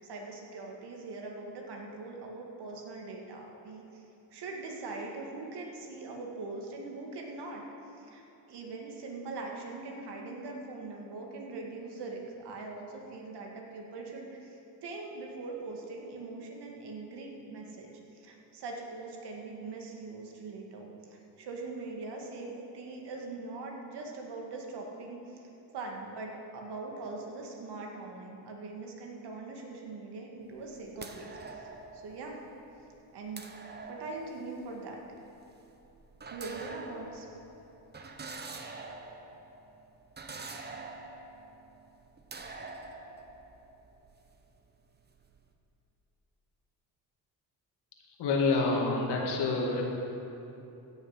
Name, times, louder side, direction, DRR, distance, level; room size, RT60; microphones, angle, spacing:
voice 1, 0.0-4.0 4.3-7.6 8.0-32.4 33.1-33.5 33.9-35.0 36.3-37.3, right 3 dB, 75° right, 0 dB, 1.9 m, -42 dB
sound 1, 30.4-44.6 44.9-45.4, right 3 dB, 25° right, 0.9 m, -46 dB
voice 2, 48.2-49.8, left 3 dB, 75° left, 0 dB, 1.9 m, -27 dB
16.0 x 6.7 x 5.7 m, 2.9 s
cardioid pair, 110°, 40 cm